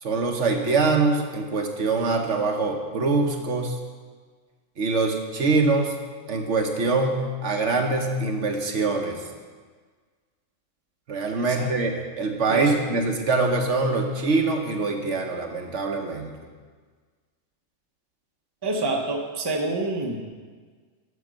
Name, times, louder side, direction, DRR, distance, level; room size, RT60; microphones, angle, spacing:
voice 1, 0.0-3.8 4.8-6.0 6.3-9.2 11.1-16.3, right 3 dB, 65° right, 3 dB, 1.3 m, -24 dB
voice 2, 11.4-11.7 12.5-12.7 18.6-20.2, right 2 dB, 20° right, 1 dB, 0.9 m, -27 dB
9.5 x 6.7 x 6.3 m, 1.5 s
omnidirectional pair, 1.4 m